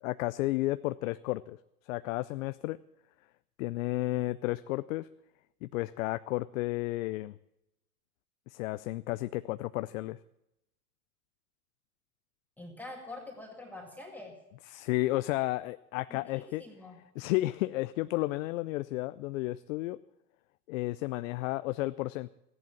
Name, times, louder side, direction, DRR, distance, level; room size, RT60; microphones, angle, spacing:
voice 1, 0.0-1.6 1.9-2.8 3.6-5.1 5.6-7.3 8.5-10.2 14.7-16.6 17.2-20.0 20.7-22.3, left 18 dB, 55° left, 14 dB, 0.5 m, -32 dB
voice 2, 12.6-14.4 16.1-17.0, left 2 dB, 5° left, -1 dB, 2.1 m, -45 dB
14.5 x 11.0 x 7.2 m, 0.87 s
hypercardioid pair, 115°, 50 cm